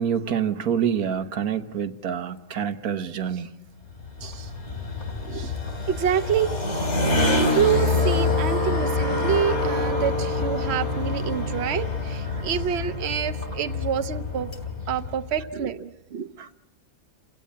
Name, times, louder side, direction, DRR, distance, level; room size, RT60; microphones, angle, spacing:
voice 1, 0.0-3.5 4.2-4.8 5.3-5.5 7.0-7.3 12.3-12.4 16.4-16.5, right 8 dB, 90° right, 1.6 m, -28 dB
sound 1, 3.9-15.5, left 2 dB, 50° left, 3.2 m, -26 dB
voice 2, 5.9-6.6 7.4-14.5 14.9-16.3, right 8 dB, 50° right, 1.2 m, -27 dB
29.5 x 17.0 x 8.6 m
omnidirectional pair, 1.5 m